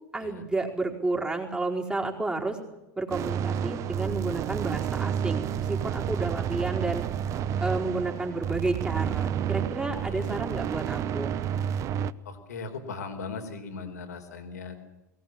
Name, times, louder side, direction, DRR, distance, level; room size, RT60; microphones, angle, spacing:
voice 1, 0.1-2.6 3.0-7.0 7.6-11.4, right 2 dB, 10° right, 0 dB, 4.7 m, -31 dB
sound 1, 3.1-12.1, right 9 dB, 35° right, 0.8 m, -30 dB
voice 2, 12.2-14.8, left 4 dB, 65° left, 7 dB, 4.0 m, -38 dB
22.5 x 19.0 x 8.8 m, 0.99 s
figure-of-eight pair, 80°, 9 cm